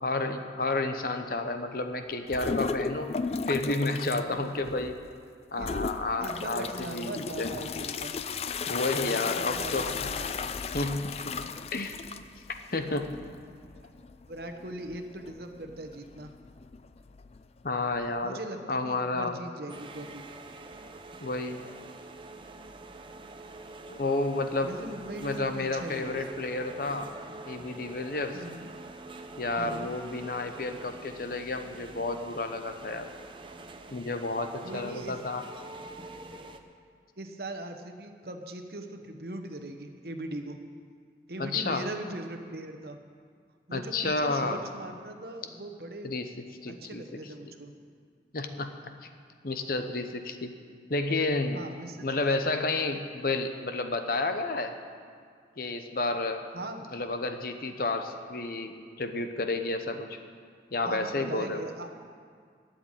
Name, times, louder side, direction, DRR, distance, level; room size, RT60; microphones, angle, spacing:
voice 1, 0.0-3.1 3.5-5.0 5.5-7.5 8.7-10.1 10.7-11.2 11.7-12.0 12.7-13.2 17.6-18.4 18.7-19.4 21.2-21.7 23.9-24.7 25.2-27.1 27.5-28.4 29.4-33.1 33.9-35.4 41.4-41.9 43.7-44.6 46.0-46.3 46.6-47.0 48.3-48.7 49.4-50.5 50.9-51.6 52.0-54.7 55.6-56.4 56.9-60.1 60.7-61.6, left 2 dB, 55° left, 7 dB, 0.9 m, -31 dB
sound 1, 2.3-4.2 4.6-5.1 5.6-18.2, left 5 dB, 35° left, 0.3 m, -35 dB
voice 2, 6.2-8.2 9.1-10.5 14.3-16.3 18.2-20.3 24.6-26.4 28.3-28.7 29.6-29.9 34.6-35.2 37.2-40.6 41.3-43.0 43.7-46.1 46.7-47.7 51.5-52.3 56.5-56.9 60.8-61.9, right 1 dB, 60° right, 5 dB, 1.1 m, -40 dB
sound 2, 19.7-36.6, right 2 dB, 30° right, 0.6 m, -46 dB
12.5 x 7.9 x 9.0 m, 2.1 s
head